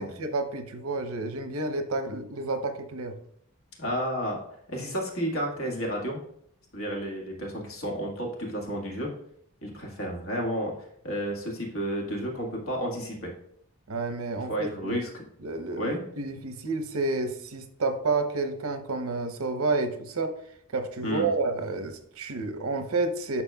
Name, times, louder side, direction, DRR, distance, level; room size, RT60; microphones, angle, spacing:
voice 1, 0.0-3.2 13.9-15.0 15.4-20.3 20.7-23.4, right 3 dB, 75° right, 7 dB, 0.8 m, -30 dB
voice 2, 3.8-4.4 4.7-6.2 6.7-9.1 9.6-10.7 11.0-13.3 14.5-15.1 15.8-16.0 21.0-21.3, equal, 70° left, -1 dB, 1.7 m, -31 dB
11.5 x 4.2 x 2.3 m, 0.68 s
head